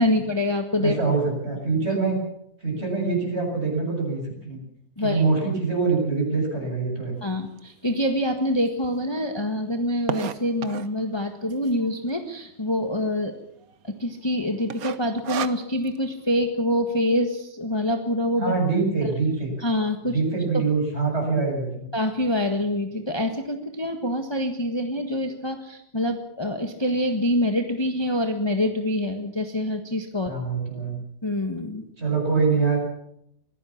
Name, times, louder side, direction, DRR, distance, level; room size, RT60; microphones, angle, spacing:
voice 1, 0.0-1.0 5.0-5.2 7.2-13.4 13.8-18.5 19.6-20.2 20.5-20.6 21.9-30.4 31.2-31.8, left 1 dB, 15° left, 4 dB, 1.6 m, -25 dB
voice 2, 0.8-2.2 2.6-4.6 5.0-7.2 18.4-19.5 20.0-21.9 30.3-31.0 32.0-32.8, right 4 dB, 35° right, 1 dB, 7.7 m, -24 dB
sound 1, 7.6-7.7 8.3-8.4 8.5-8.6 8.9-11.0 11.7-12.1 12.4-12.5 12.7-12.8 13.4-13.7 14.0-14.3 14.7-16.0, right 8 dB, 60° right, 1.4 m, -32 dB
24.5 x 16.5 x 7.3 m, 0.74 s
omnidirectional pair, 1.8 m